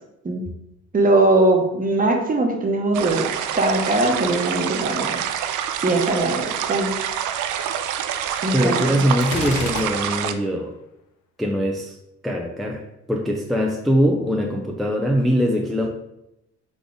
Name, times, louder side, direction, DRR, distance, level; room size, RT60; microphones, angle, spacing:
voice 1, 0.9-3.3 3.5-5.2 5.8-6.9 8.4-8.9, right 2 dB, 30° right, 2 dB, 1.0 m, -20 dB
Creek in Forest, 2.9-10.3, right 9 dB, 80° right, 0.5 m, -27 dB
voice 2, 8.5-10.7 11.4-12.0 12.2-12.8 13.1-15.9, equal, ahead, 0 dB, 0.4 m, -22 dB
Gunshot gunfire, 9.2-10.4, left 6 dB, 80° left, 0.6 m, -31 dB
3.9 x 3.6 x 3.5 m, 0.84 s
cardioid pair, 90°, 30 cm